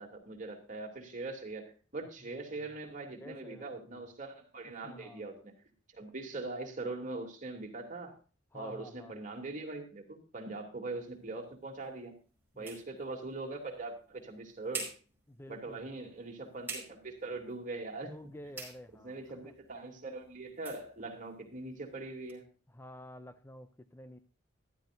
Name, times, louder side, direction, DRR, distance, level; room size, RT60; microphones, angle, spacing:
voice 1, 0.0-5.5 5.9-8.1 8.5-12.2 12.6-14.9 15.5-18.1 19.0-22.4, right 3 dB, 40° right, 2 dB, 2.8 m, -42 dB
voice 2, 3.2-3.6 3.9-4.1 4.8-5.2 8.5-9.3 12.5-12.8 15.3-15.8 18.0-19.5 22.7-24.2, left 1 dB, 10° left, 10 dB, 0.5 m, -50 dB
sound 1, 10.9-22.4, right 4 dB, 10° right, 4.9 m, -50 dB
14.5 x 12.5 x 2.6 m, 0.36 s
head